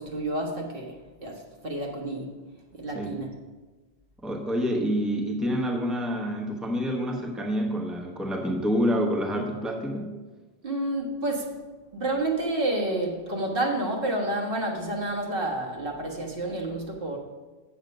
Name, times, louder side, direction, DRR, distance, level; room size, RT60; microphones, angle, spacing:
voice 1, 0.0-2.3 2.7-3.3 10.6-11.5 11.9-17.2, right 1 dB, 60° right, -1 dB, 1.6 m, -29 dB
voice 2, 4.2-10.1, equal, ahead, 0 dB, 1.0 m, -27 dB
8.1 x 7.6 x 5.2 m, 1.3 s
omnidirectional pair, 1.0 m